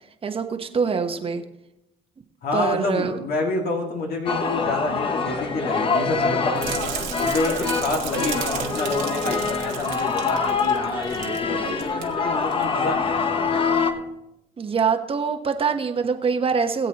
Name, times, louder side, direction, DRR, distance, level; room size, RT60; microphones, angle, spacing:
voice 1, 0.2-1.4 2.5-3.2 14.6-16.9, right 5 dB, 35° right, 6 dB, 1.1 m, -24 dB
voice 2, 2.4-13.6, left 2 dB, 65° left, 1 dB, 2.1 m, -28 dB
sound 1, 4.3-13.9, left 4 dB, 30° left, 1.1 m, -25 dB
sound 2, 6.6-11.4 11.7-12.0 12.5-12.6, right 10 dB, 80° right, 1.7 m, -34 dB
20.5 x 7.9 x 3.0 m, 0.86 s
cardioid pair, 110°, 17 cm